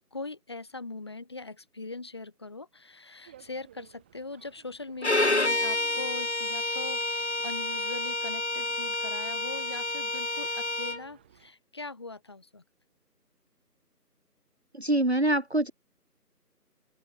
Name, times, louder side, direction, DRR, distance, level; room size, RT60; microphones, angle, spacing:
voice 1, 0.0-12.6, left 3 dB, 15° left, 4.1 m, -41 dB
sound 1, 3.2-11.5, right 11 dB, 5° right, 7.6 m, -59 dB
Bowed string instrument, 5.0-11.0, left 2 dB, 45° left, 1.2 m, -29 dB
voice 2, 14.7-15.7, right 1 dB, 40° right, 1.2 m, -25 dB
open air
figure-of-eight pair, 175°, 48 cm